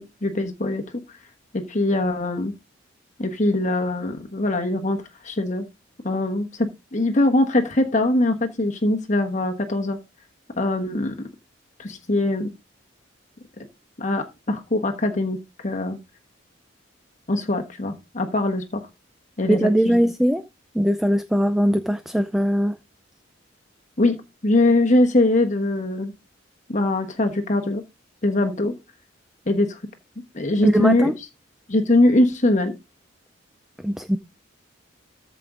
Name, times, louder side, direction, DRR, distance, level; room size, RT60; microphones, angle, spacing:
voice 1, 0.2-0.8 1.5-2.5 3.2-5.6 6.0-10.0 10.6-11.1 11.8-12.5 14.0-16.0 17.3-18.9 19.4-20.0 24.0-24.2 24.4-26.1 26.7-27.8 28.2-28.7 29.5-29.8 30.3-31.1 31.7-32.7, left 2 dB, 40° left, 1.2 m, -22 dB
voice 2, 19.5-20.4 20.7-22.8 30.6-31.1 33.8-34.2, equal, ahead, 0.5 m, -20 dB
14.0 x 5.2 x 3.8 m
head